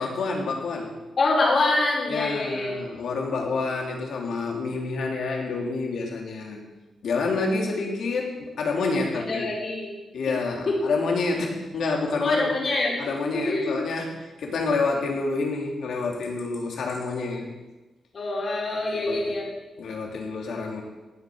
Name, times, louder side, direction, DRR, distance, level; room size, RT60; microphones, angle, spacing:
voice 1, 0.0-1.0 2.1-6.6 7.0-9.5 10.1-12.5 13.0-17.4 19.1-19.4 19.8-20.8, left 3 dB, 70° left, 0 dB, 3.3 m, -28 dB
voice 2, 1.2-2.7 9.2-10.0 10.3-10.4 10.7-11.0 12.2-12.9 13.3-13.8 18.1-19.5, left 2 dB, 45° left, -3 dB, 5.0 m, -25 dB
17.5 x 8.8 x 6.5 m, 1.1 s
wide cardioid pair, 140°, 0 cm